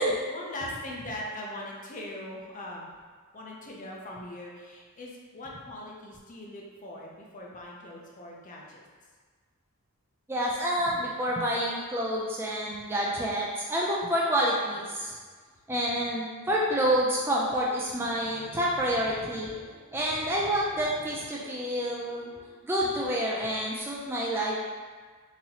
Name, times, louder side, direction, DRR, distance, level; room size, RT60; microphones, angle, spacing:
voice 1, 0.3-2.9 3.3-8.9 15.9-16.0, left 1 dB, 35° left, -2 dB, 0.6 m, -41 dB
voice 2, 10.3-15.2 15.7-24.7, equal, 10° right, -5 dB, 0.3 m, -28 dB
3.9 x 2.8 x 2.8 m, 1.5 s
head